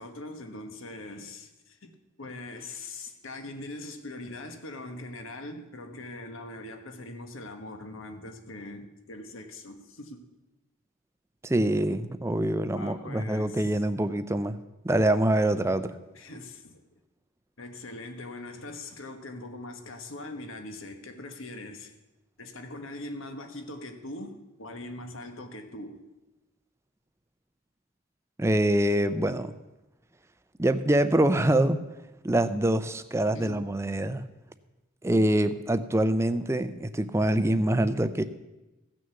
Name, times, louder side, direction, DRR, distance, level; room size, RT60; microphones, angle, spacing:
voice 1, 0.0-10.3 12.7-13.8 16.1-16.8 17.6-22.0 22.4-26.0 33.3-33.7, left 2 dB, 75° left, 1.3 m, -41 dB
voice 2, 11.4-14.6 14.8-15.9 28.4-29.5 30.6-31.8 32.2-34.2 35.0-38.2, right 1 dB, 15° right, 0.4 m, -25 dB
15.5 x 6.4 x 7.0 m
head